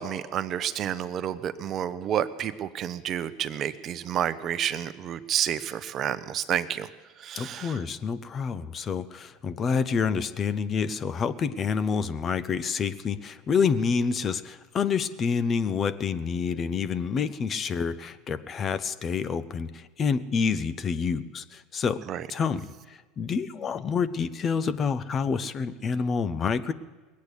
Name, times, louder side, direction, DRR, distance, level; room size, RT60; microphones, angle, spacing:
voice 1, 0.0-6.9 7.2-7.8 22.1-22.3, right 10 dB, 45° right, 13 dB, 0.8 m, -30 dB
voice 2, 7.3-22.0 22.3-26.7, left 6 dB, 35° left, 13 dB, 0.7 m, -28 dB
19.5 x 8.5 x 8.3 m, 1.3 s
hypercardioid pair, 85°, 0 cm